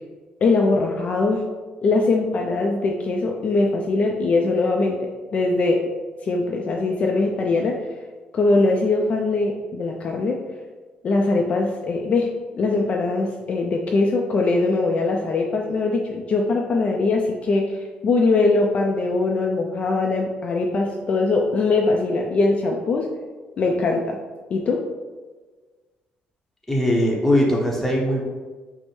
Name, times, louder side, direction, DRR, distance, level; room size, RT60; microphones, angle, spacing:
voice 1, 0.4-1.4 1.8-5.0 5.3-5.8 6.2-7.8 8.3-10.4 11.0-23.1 23.6-24.2 24.5-24.8, left 3 dB, 40° left, 1 dB, 0.4 m, -21 dB
voice 2, 26.7-28.2, left 1 dB, 5° left, -3 dB, 0.8 m, -20 dB
5.2 x 2.0 x 3.1 m, 1.3 s
cardioid pair, 130°, 3 cm